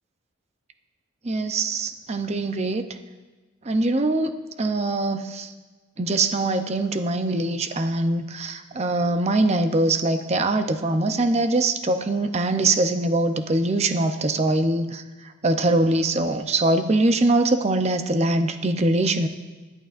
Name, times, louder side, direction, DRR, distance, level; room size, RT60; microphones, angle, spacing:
voice 1, 1.2-2.8 3.7-5.5 6.0-15.0 15.4-19.3, right 2 dB, 30° right, 8 dB, 0.6 m, -23 dB
20.0 x 11.0 x 2.5 m, 1.3 s
head